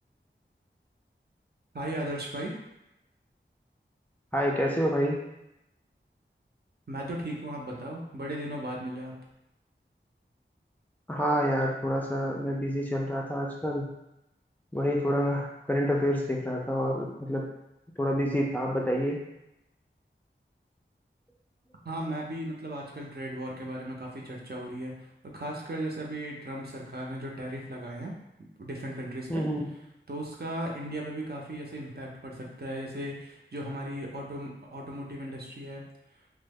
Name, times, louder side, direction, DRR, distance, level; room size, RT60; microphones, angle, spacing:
voice 1, 1.7-2.5 6.9-9.1 21.8-24.9 25.2-28.2 28.6-29.4 30.1-35.9, right 1 dB, 50° right, -2 dB, 0.6 m, -36 dB
voice 2, 4.3-5.2 11.1-13.8 14.7-17.4 18.0-19.2 29.3-29.7, equal, 10° left, -2 dB, 0.5 m, -28 dB
3.1 x 2.1 x 3.5 m, 0.87 s
wide cardioid pair, 50°, 20 cm